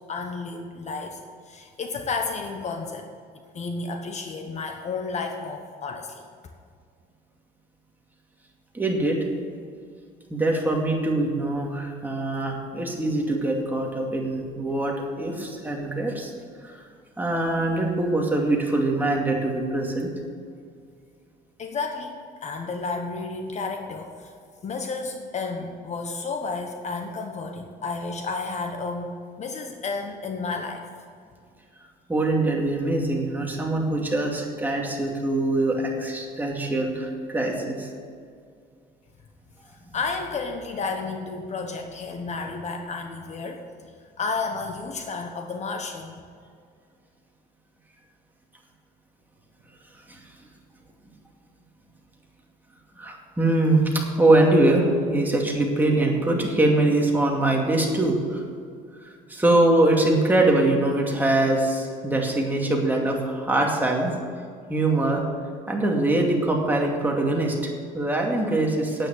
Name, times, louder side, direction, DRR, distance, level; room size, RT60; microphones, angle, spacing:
voice 1, 0.1-1.2 1.5-3.1 3.5-6.3 21.6-24.3 24.6-30.9 39.9-46.2, left 4 dB, 45° left, 4 dB, 1.2 m, -32 dB
voice 2, 8.7-9.2 10.3-16.3 16.6-16.8 17.2-20.1 32.1-37.9 39.9-40.0 50.1-50.2 53.0-58.4 59.3-64.1 64.7-65.2 65.7-69.1, right 2 dB, 10° right, -1 dB, 2.4 m, -23 dB
9.1 x 9.1 x 7.5 m, 2.2 s
cardioid pair, 110°, 17 cm